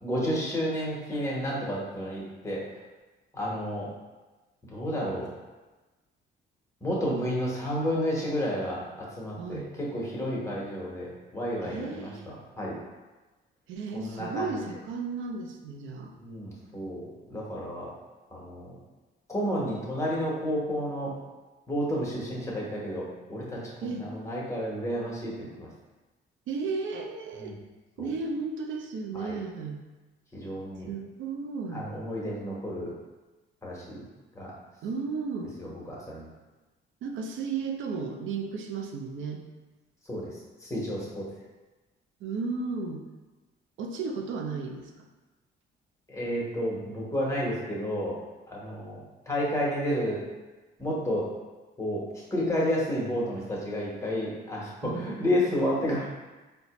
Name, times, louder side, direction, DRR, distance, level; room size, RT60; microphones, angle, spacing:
voice 1, 0.0-2.6 3.3-3.9 4.7-5.3 6.8-12.8 13.9-14.6 16.2-17.9 18.3-18.8 19.3-21.1 21.7-23.6 24.0-25.7 27.4-27.5 28.0-28.1 29.1-29.3 30.3-30.9 31.7-32.9 33.6-34.0 34.3-34.5 35.6-36.3 40.1-40.3 40.6-41.3 46.1-48.2 48.5-50.2 50.8-51.3 51.8-52.0 52.3-56.1, equal, 15° left, -5 dB, 1.1 m, -31 dB
voice 2, 9.4-9.7 11.6-12.3 13.7-16.1 23.8-24.1 26.5-27.6 28.0-29.8 30.9-31.9 34.8-35.5 37.0-39.4 42.2-43.0 43.8-45.1 54.8-55.1, right 4 dB, 80° right, 3 dB, 0.5 m, -34 dB
4.1 x 2.3 x 2.9 m, 1.2 s
cardioid pair, 90°, 20 cm